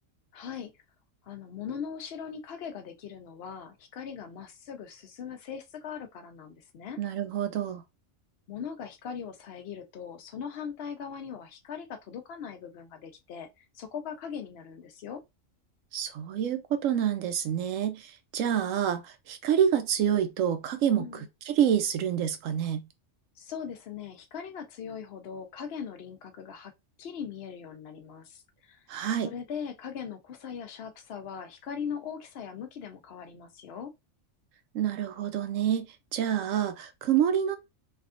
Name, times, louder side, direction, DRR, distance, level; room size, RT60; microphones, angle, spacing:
voice 1, 0.3-0.7 1.2-7.0 8.5-15.2 21.0-21.3 23.4-26.7 27.0-28.8 29.2-33.9, left 7 dB, 60° left, 0.8 m, -40 dB
voice 2, 7.0-7.8 15.9-18.1 18.3-21.1 21.5-22.8 28.9-29.3 34.7-35.9 36.1-37.6, right 9 dB, 85° right, 1.0 m, -27 dB
3.4 x 2.3 x 2.4 m
omnidirectional pair, 1.3 m